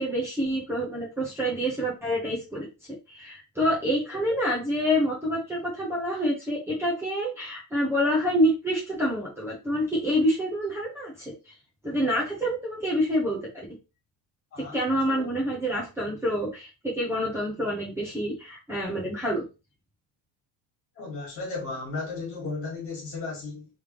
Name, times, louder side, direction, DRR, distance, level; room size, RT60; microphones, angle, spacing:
voice 1, 0.0-2.7 3.1-11.5 11.8-13.7 14.6-19.4, equal, 5° right, 1.0 m, -27 dB
voice 2, 14.5-15.3 21.0-23.7, left 3 dB, 35° left, 2.1 m, -35 dB
3.5 x 3.5 x 3.1 m
cardioid pair, 160°, 39 cm